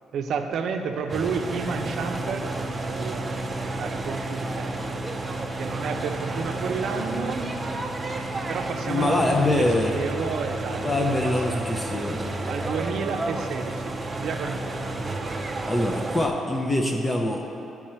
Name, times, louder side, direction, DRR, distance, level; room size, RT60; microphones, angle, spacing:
voice 1, 0.1-2.5 2.8-5.0 5.6-7.4 8.5-11.9 12.5-14.8, right 5 dB, 70° right, 5 dB, 0.6 m, -31 dB
sound 1, 1.1-16.3, right 2 dB, 30° right, 0.6 m, -31 dB
voice 2, 8.9-9.9 10.7-12.2 15.6-17.5, left 2 dB, 20° left, 1 dB, 0.6 m, -24 dB
8.9 x 4.7 x 4.3 m, 2.7 s
cardioid pair, 90°, 0 cm